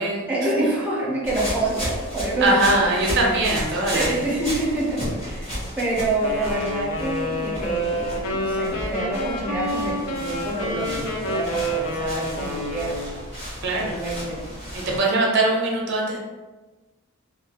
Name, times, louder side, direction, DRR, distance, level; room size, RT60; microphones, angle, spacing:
voice 1, 0.3-3.5 3.9-13.1 13.8-14.4, right 2 dB, 5° right, -5 dB, 0.5 m, -27 dB
sound 1, 1.2-15.0, equal, 30° left, 1.1 m, -33 dB
voice 2, 2.4-4.2 13.6-14.0 14.7-16.2, right 2 dB, 55° right, -1 dB, 0.5 m, -21 dB
Wind instrument woodwind instrument, 6.2-13.2, equal, 70° left, 0.4 m, -28 dB
2.3 x 2.3 x 2.7 m, 1.2 s
head